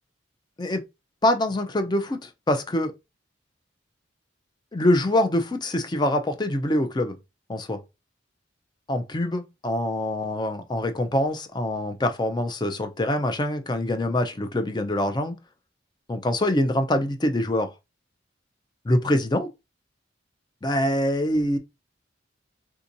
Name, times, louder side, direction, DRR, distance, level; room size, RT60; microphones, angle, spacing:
voice 1, 1.2-2.9 4.7-7.2 7.5-7.8 8.9-15.3 16.1-17.7 18.8-19.5 20.6-21.6, left 1 dB, 20° left, 0.5 m, -24 dB
3.5 x 2.8 x 2.6 m
head